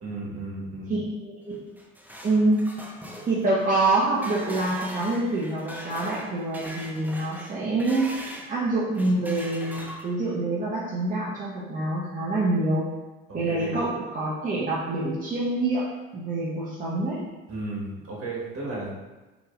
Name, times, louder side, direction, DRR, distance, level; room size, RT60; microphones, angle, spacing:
voice 1, 0.0-1.0 13.3-13.8 17.5-19.0, right 2 dB, 45° right, -5 dB, 1.5 m, -34 dB
voice 2, 0.9-1.6 2.2-2.6 3.2-8.1 8.5-12.9 13.3-15.8 16.1-17.2, right 2 dB, 25° right, -6 dB, 0.9 m, -26 dB
sound 1, 1.5-8.5 8.9-10.4, equal, 5° right, 0.5 m, -41 dB
4.6 x 3.0 x 2.4 m, 1.2 s
supercardioid pair, 75°, 32 cm